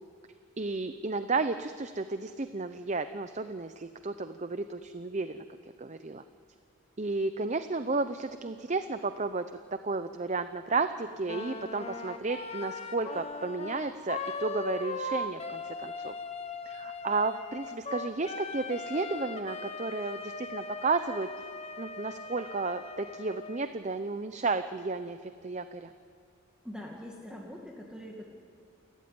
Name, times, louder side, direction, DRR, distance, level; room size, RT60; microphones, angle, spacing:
voice 1, 0.6-5.4 5.8-6.2 7.0-9.5 9.8-16.1 16.7-21.3 21.8-25.9, right 3 dB, 35° right, 10 dB, 0.6 m, -33 dB
Wind instrument woodwind instrument, 11.2-23.7, left 3 dB, 30° left, 1.2 m, -39 dB
voice 2, 26.6-28.3, equal, 5° right, -2 dB, 2.2 m, -43 dB
29.5 x 14.0 x 9.6 m, 2.3 s
head